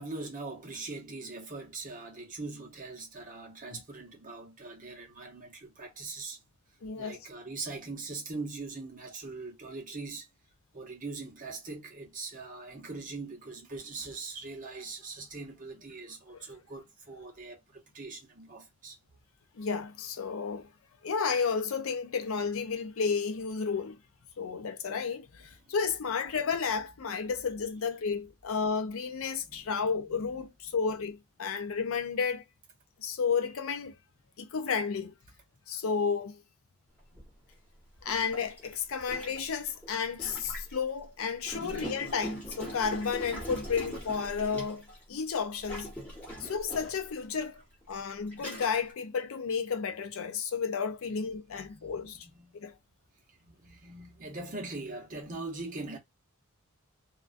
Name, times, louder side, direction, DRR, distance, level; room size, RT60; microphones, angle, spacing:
voice 1, 0.0-6.4 7.0-10.3 10.7-19.0 25.7-25.8 29.5-30.4 30.7-30.8 37.1-37.2 41.5-41.9 46.2-46.3 48.1-48.5 51.1-51.3 51.5-52.6 53.4-56.0, right 3 dB, 40° right, 0.8 m, -42 dB
voice 2, 6.8-7.2 16.3-16.4 19.5-20.7 21.0-24.0 24.4-32.4 33.0-34.0 34.4-35.1 35.7-36.4 38.0-45.9 46.4-47.6 47.9-52.3 52.5-52.7, left 5 dB, 65° left, 0.5 m, -32 dB
Gurgling, 37.2-37.3 38.0-40.8 41.4-45.0 45.6-47.1 47.8-47.9 48.3-48.9, equal, 5° left, 1.1 m, -41 dB
2.3 x 2.2 x 2.4 m
head